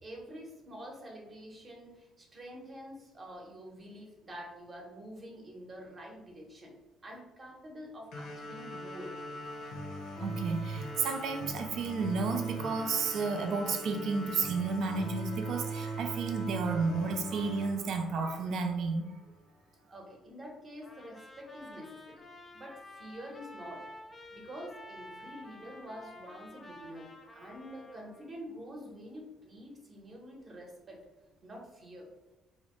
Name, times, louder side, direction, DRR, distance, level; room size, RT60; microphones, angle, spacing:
voice 1, 0.0-6.8 7.0-9.1 19.9-22.2 22.5-23.8 24.2-31.0 31.4-32.1, equal, 35° right, -1 dB, 0.8 m, -47 dB
sound 1, 8.1-19.1, right 2 dB, 85° left, 0.7 m, -40 dB
voice 2, 10.2-19.2, right 4 dB, 65° right, 5 dB, 0.4 m, -32 dB
Trumpet, 20.8-28.3, left 1 dB, 25° left, 0.4 m, -50 dB
2.7 x 2.1 x 3.0 m, 1.0 s
cardioid pair, 100°, 0 cm